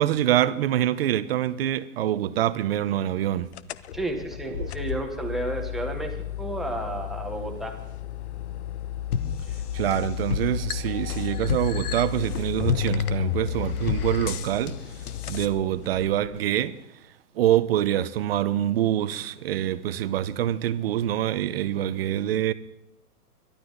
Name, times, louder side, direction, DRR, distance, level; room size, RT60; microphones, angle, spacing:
voice 1, 0.0-3.5 4.5-4.7 9.7-15.0 15.3-16.8 17.3-22.5, right 12 dB, 40° right, 0.8 m, -25 dB
sound 1, 3.5-16.4, left 10 dB, 45° left, 0.6 m, -33 dB
voice 2, 3.9-7.8, right 2 dB, ahead, 1.1 m, -32 dB
sound 2, 9.1-15.5, left 6 dB, 75° left, 1.3 m, -32 dB
22.0 x 12.0 x 4.0 m
hypercardioid pair, 160°, 45 cm